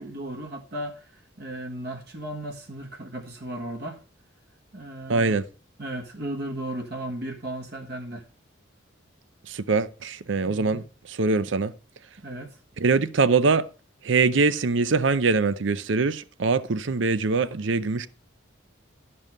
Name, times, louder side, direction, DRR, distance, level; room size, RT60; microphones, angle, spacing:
voice 1, 0.0-4.0 4.7-5.4 5.8-8.2 10.4-10.8 12.2-12.6, right 1 dB, 55° right, 1.5 m, -35 dB
voice 2, 5.1-5.5 9.5-11.7 12.8-13.7 14.0-18.1, right 4 dB, 70° right, 0.6 m, -23 dB
12.0 x 5.5 x 5.3 m
head